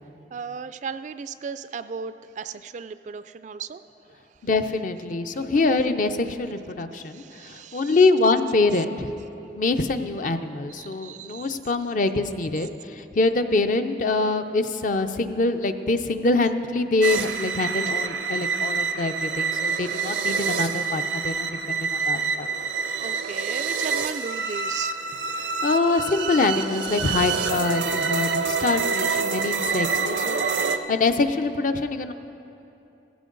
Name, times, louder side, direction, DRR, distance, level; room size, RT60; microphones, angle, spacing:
voice 1, 0.3-3.8 5.3-5.5 6.9-8.0 10.8-11.6 23.0-25.0, right 6 dB, 45° right, 12 dB, 0.3 m, -36 dB
voice 2, 4.4-9.1 9.5-22.5 25.6-32.1, left 3 dB, 50° left, 8 dB, 0.6 m, -24 dB
sound 1, 17.0-30.8, right 5 dB, 80° right, 0.6 m, -27 dB
15.5 x 15.5 x 3.9 m, 2.8 s
head